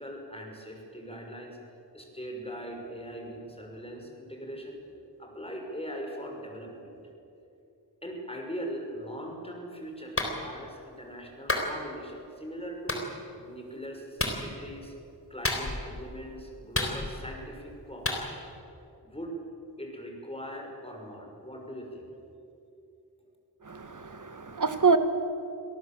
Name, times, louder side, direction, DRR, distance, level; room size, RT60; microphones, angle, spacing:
voice 1, 0.0-1.6 1.9-4.8 5.2-7.0 8.0-14.9 15.3-18.4 19.0-19.4 19.8-22.1, equal, 15° left, 1 dB, 5.8 m, -40 dB
Clapping, 10.2-10.3 11.5-11.7 12.9-13.0 14.2-14.4 15.4-15.9 16.7-17.3 18.1-18.2, left 2 dB, 35° left, 3.9 m, -29 dB
voice 2, 23.7-25.0, right 4 dB, 50° right, 9 dB, 1.7 m, -25 dB
26.5 x 18.0 x 7.6 m, 2.8 s
wide cardioid pair, 55°, 40 cm